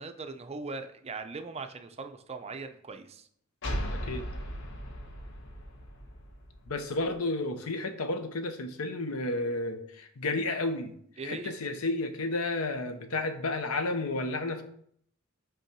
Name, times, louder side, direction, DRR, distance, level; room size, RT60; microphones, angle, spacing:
voice 1, 0.0-3.3 11.2-11.5, right 4 dB, 30° right, 8 dB, 0.5 m, -40 dB
sound 1, 3.6-7.1, equal, 60° left, 1.0 m, -37 dB
voice 2, 3.9-4.3 6.7-10.9 11.2-14.6, left 2 dB, 85° left, 8 dB, 0.8 m, -32 dB
5.6 x 3.9 x 6.0 m, 0.65 s
head